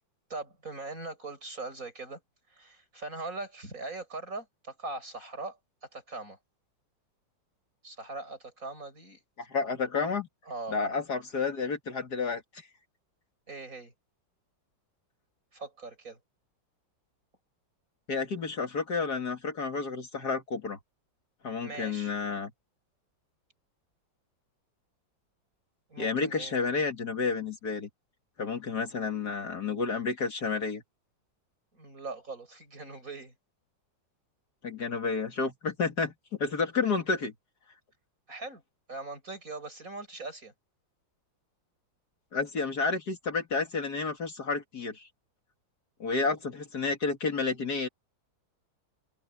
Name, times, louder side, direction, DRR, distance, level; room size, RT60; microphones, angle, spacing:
voice 1, 0.3-2.2 2.5-5.6 5.9-6.4 7.8-9.2 10.5-10.8 13.5-13.9 15.5-16.2 21.6-22.1 25.9-26.6 31.7-33.3 38.3-38.6 38.9-40.5, right 3 dB, 45° right, 7.2 m, -41 dB
voice 2, 9.4-10.3 10.7-12.4 18.1-20.8 21.4-22.5 26.0-27.9 28.4-30.8 34.6-36.1 36.4-37.3 42.3-45.0 46.0-47.9, left 4 dB, 55° left, 2.6 m, -30 dB
omnidirectional pair, 2.1 m